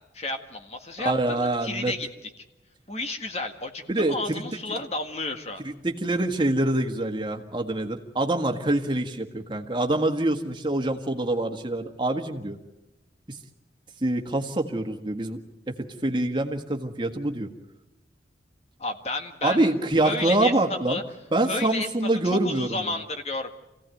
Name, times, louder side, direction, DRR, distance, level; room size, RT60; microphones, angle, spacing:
voice 1, 0.1-2.1 2.9-5.6 18.8-19.7 20.0-21.0 21.4-21.9 22.2-23.5, left 2 dB, 35° left, 6 dB, 1.7 m, -32 dB
voice 2, 1.0-1.9 3.9-4.4 5.6-12.6 13.3-13.4 14.0-15.4 15.7-15.8 16.0-17.5 19.4-21.0 21.3-22.9, right 2 dB, 25° right, 4 dB, 1.7 m, -25 dB
26.0 x 17.0 x 9.2 m, 1.0 s
head